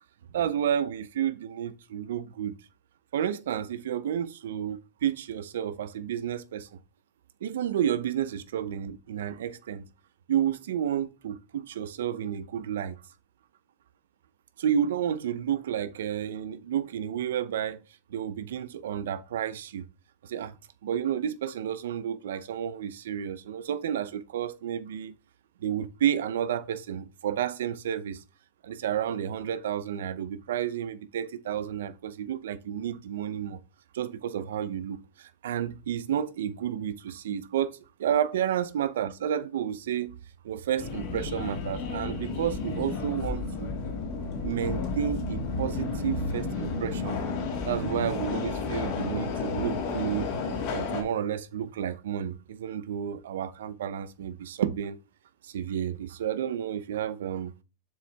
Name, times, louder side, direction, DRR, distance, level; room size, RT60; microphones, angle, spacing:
voice 1, 0.3-2.5 3.1-6.7 7.4-9.8 10.3-13.0 14.6-17.8 18.1-19.8 20.2-20.6 20.8-25.2 25.6-28.2 28.6-33.6 33.9-37.7 38.0-40.1 40.4-43.7 44.4-47.2 47.6-50.3 50.7-55.0 55.4-57.5, right 9 dB, 85° right, 0.6 m, -31 dB
Subway metro underground, 40.8-51.0, left 4 dB, 55° left, 2.3 m, -32 dB
6.8 x 4.6 x 3.5 m
supercardioid pair, 135°, 0 cm